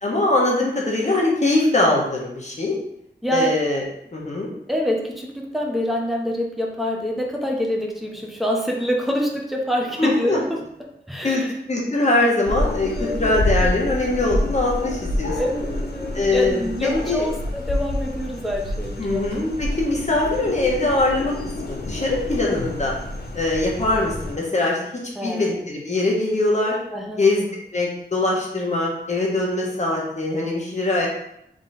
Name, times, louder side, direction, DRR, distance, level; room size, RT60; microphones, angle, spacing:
voice 1, 0.0-2.8 3.3-3.8 4.1-4.5 10.0-10.4 11.2-11.4 11.7-15.4 16.1-17.3 19.0-21.3 21.7-22.9 23.3-24.8 25.2-26.8 27.2-27.5 27.7-31.1, left 2 dB, 40° left, -3 dB, 1.3 m, -22 dB
voice 2, 3.2-3.5 4.7-10.6 11.1-11.5 12.8-13.3 15.4-19.2 25.2-25.7 26.9-27.2, equal, ahead, 0 dB, 0.9 m, -26 dB
sound 1, 12.5-24.3, left 1 dB, 60° left, 0.8 m, -28 dB
3.8 x 3.1 x 4.0 m, 0.78 s
wide cardioid pair, 80°, 19 cm